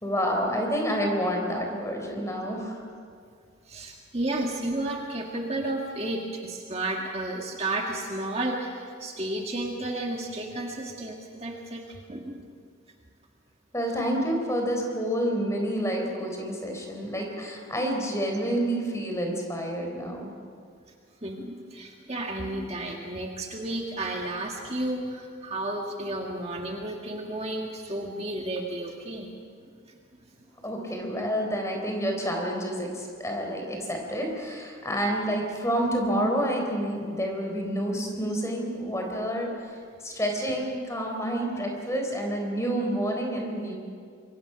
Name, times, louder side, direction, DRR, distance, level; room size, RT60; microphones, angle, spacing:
voice 1, 0.0-2.8 13.7-20.3 30.6-43.7, equal, 15° left, 1 dB, 3.9 m, -29 dB
voice 2, 3.7-12.4 19.8-19.9 21.2-29.3 29.9-30.0, right 1 dB, 30° right, 1 dB, 1.7 m, -32 dB
26.5 x 23.0 x 5.9 m, 2.2 s
head